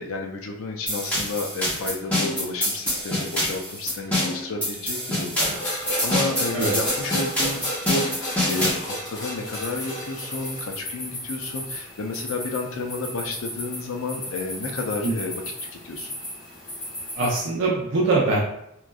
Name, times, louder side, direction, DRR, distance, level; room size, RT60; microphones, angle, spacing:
voice 1, 0.0-15.4 15.7-16.1, left 3 dB, 80° left, 3 dB, 0.5 m, -31 dB
sound 1, 0.9-8.9, left 1 dB, 5° left, 0.9 m, -26 dB
sound 2, 5.4-10.7, equal, 60° left, 1.3 m, -31 dB
sound 3, 9.5-17.4, left 1 dB, 25° left, 1.3 m, -36 dB
voice 2, 17.1-18.4, right 3 dB, 65° right, -4 dB, 0.5 m, -22 dB
3.0 x 2.5 x 2.3 m, 0.78 s
head